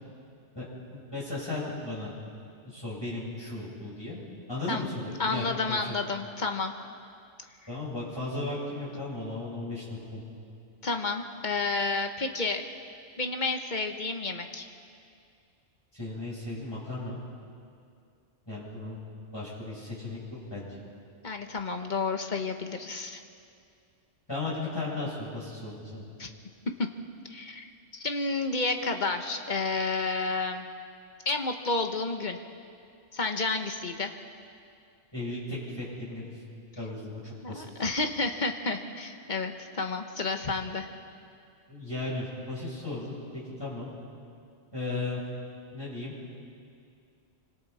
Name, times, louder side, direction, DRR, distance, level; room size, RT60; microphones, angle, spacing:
voice 1, 0.9-2.1 2.6-4.2 4.5-5.8 7.7-10.2 16.0-17.2 18.5-19.0 19.3-20.2 20.5-20.8 24.3-26.0 35.1-36.2 36.8-37.7 41.7-43.9 44.7-45.2 45.7-46.1, left 2 dB, 20° left, -8 dB, 8.1 m, -35 dB
voice 2, 5.2-6.7 10.8-12.6 13.2-14.7 21.2-23.2 26.2-26.3 26.8-26.9 27.3-30.7 31.2-32.4 33.1-34.1 37.4-40.9, left 3 dB, 40° left, 5 dB, 1.4 m, -30 dB
27.0 x 25.5 x 4.3 m, 2.4 s
omnidirectional pair, 1.3 m